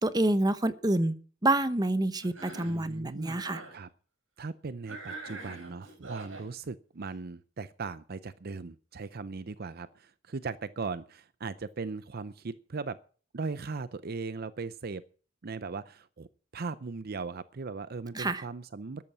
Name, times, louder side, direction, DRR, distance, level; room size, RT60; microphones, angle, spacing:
voice 1, 0.0-1.1 1.4-3.6 18.1-18.4, right 1 dB, 20° right, 12 dB, 1.0 m, -27 dB
Cough, 2.2-2.8 3.2-3.8 4.9-6.5, right 2 dB, 85° right, 7.3 m, -43 dB
voice 2, 2.6-3.4 3.7-3.9 4.4-13.0 13.3-15.0 15.4-16.3 16.5-19.0, right 4 dB, 50° right, 15 dB, 0.6 m, -38 dB
13.5 x 11.0 x 6.1 m, 0.40 s
head